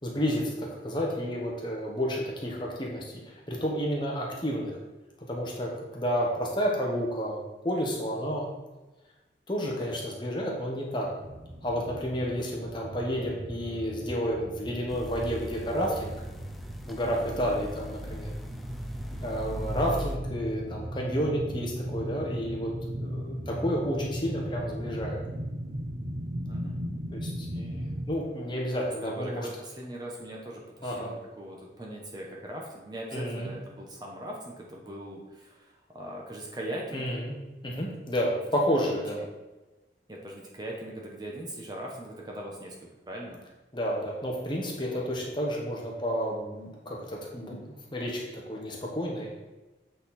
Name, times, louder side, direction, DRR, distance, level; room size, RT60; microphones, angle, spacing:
voice 1, 0.0-4.8 5.3-8.5 9.5-11.1 11.6-16.1 16.9-18.3 19.2-22.7 23.0-25.2 27.1-29.5 30.8-31.1 33.1-33.5 36.9-37.3 37.6-39.2 43.7-49.3, equal, 25° left, -2 dB, 1.2 m, -31 dB
sound 1, 11.2-28.1, equal, 45° right, 0.8 m, -37 dB
sound 2, 14.9-20.2, equal, ahead, 0.4 m, -41 dB
voice 2, 29.0-37.1 37.8-38.2 40.1-42.8 43.1-43.4 44.7-45.0, right 1 dB, 25° right, -1 dB, 0.9 m, -40 dB
8.3 x 4.2 x 4.2 m, 1.1 s
head